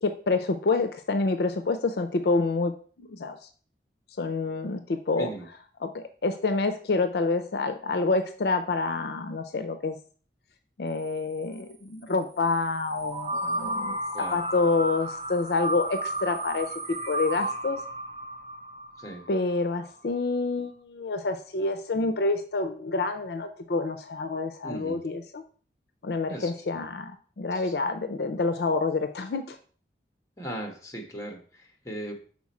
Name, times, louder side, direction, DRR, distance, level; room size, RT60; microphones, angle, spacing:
voice 1, 0.0-2.7 3.0-3.4 4.2-5.3 5.8-10.0 10.8-17.8 19.3-25.4 26.0-29.6, left 3 dB, 65° left, 9 dB, 0.5 m, -28 dB
sound 1, 12.9-19.7, right 1 dB, 35° right, 0.7 m, -33 dB
voice 2, 24.6-25.0 26.3-26.8 27.5-27.8 30.4-32.2, right 1 dB, 20° left, 3 dB, 1.1 m, -38 dB
6.0 x 4.3 x 4.2 m, 0.42 s
head